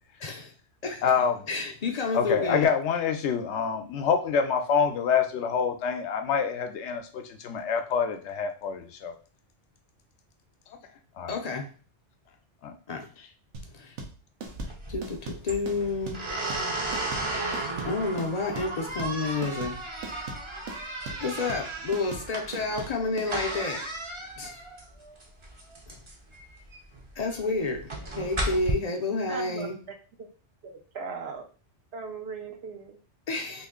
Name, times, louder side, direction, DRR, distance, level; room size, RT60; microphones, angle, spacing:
voice 1, 0.2-0.5 0.8-1.0 1.5-2.7 11.3-11.7 12.9-13.1 13.7-13.9 14.9-16.3 17.8-19.8 21.2-23.9 24.4-24.5 25.9-26.0 27.2-29.8 33.3-33.7, left 3 dB, 50° left, 0.5 m, -30 dB
voice 2, 1.0-1.5 2.1-9.1 11.2-11.4 12.6-12.7, left 6 dB, 75° left, 0.9 m, -26 dB
sound 1, 13.5-23.3, right 3 dB, 85° right, 1.1 m, -40 dB
sound 2, 14.5-28.7, right 2 dB, 30° right, 0.6 m, -35 dB
voice 3, 29.3-29.7 30.6-31.5 31.9-33.0, right 5 dB, 65° right, 0.9 m, -38 dB
3.0 x 2.6 x 3.6 m
omnidirectional pair, 1.2 m